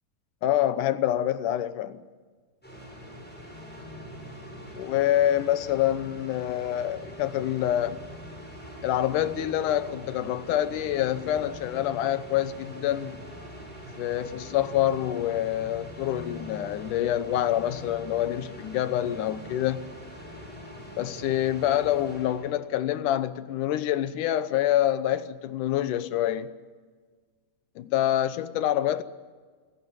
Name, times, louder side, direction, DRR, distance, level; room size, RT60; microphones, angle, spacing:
voice 1, 0.4-2.0 4.7-8.0 8.8-13.2 14.0-19.9 21.0-26.5 27.8-29.0, left 12 dB, 90° left, 2.5 m, -26 dB
sound 1, 2.6-22.5, equal, 5° left, 6.6 m, -43 dB
27.0 x 15.0 x 9.7 m
omnidirectional pair, 3.6 m